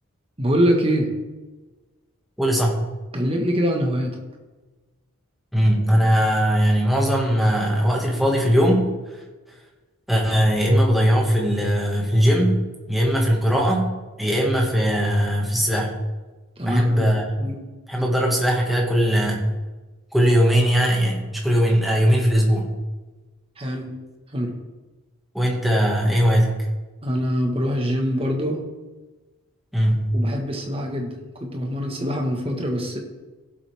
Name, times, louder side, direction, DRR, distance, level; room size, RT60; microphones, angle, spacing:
voice 1, 0.4-1.1 3.1-4.2 16.6-17.1 17.4-17.6 23.6-23.9 24.3-24.5 27.0-28.7 30.1-33.0, equal, 25° right, 2 dB, 1.5 m, -24 dB
voice 2, 2.4-2.8 5.5-8.9 10.1-12.6 12.9-13.9 14.2-15.9 16.6-17.3 17.9-19.4 20.1-22.7 25.3-26.6 29.7-30.2, equal, ahead, -2 dB, 1.8 m, -19 dB
16.0 x 7.7 x 3.6 m, 1.2 s
head